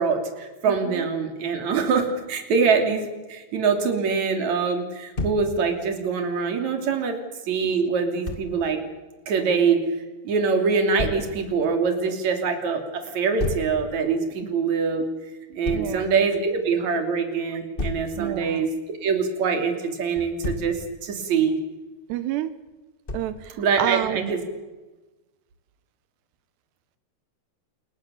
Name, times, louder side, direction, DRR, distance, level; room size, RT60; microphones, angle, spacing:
voice 1, 0.0-7.2 7.5-8.8 9.3-9.8 10.2-15.1 15.6-18.7 19.0-21.6 23.6-24.4, right 5 dB, 45° right, 5 dB, 4.0 m, -24 dB
voice 2, 0.7-1.1 15.7-16.1 18.2-18.6 22.1-22.5 23.1-24.3, right 13 dB, 85° right, 13 dB, 3.1 m, -29 dB
Thump thud, 5.1-5.5 8.2-8.5 11.0-11.3 13.4-13.7 15.6-15.9 17.8-18.1 20.1-20.7 23.1-23.4, left 2 dB, 60° left, 0.5 m, -30 dB
28.0 x 21.5 x 7.1 m, 1.2 s
omnidirectional pair, 4.8 m